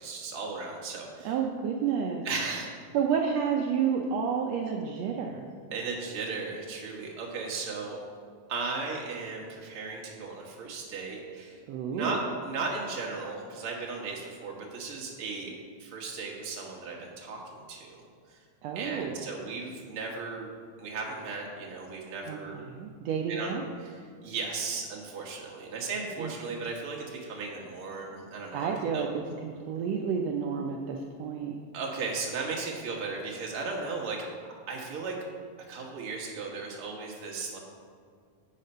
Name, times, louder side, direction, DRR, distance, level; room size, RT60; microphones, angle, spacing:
voice 1, 0.0-1.3 2.2-2.7 5.7-8.0 8.5-11.6 11.9-15.5 15.8-18.4 18.7-20.5 20.8-22.6 23.3-23.5 23.8-29.1 31.7-34.2 34.7-35.2 35.7-37.6, right 4 dB, 50° right, -1 dB, 2.0 m, -36 dB
voice 2, 1.2-2.2 2.9-5.5 11.7-12.2 18.6-19.3 22.2-23.6 26.2-26.3 28.5-31.6, right 7 dB, 80° right, 1 dB, 1.5 m, -30 dB
8.3 x 6.5 x 5.5 m, 2.2 s
omnidirectional pair, 3.6 m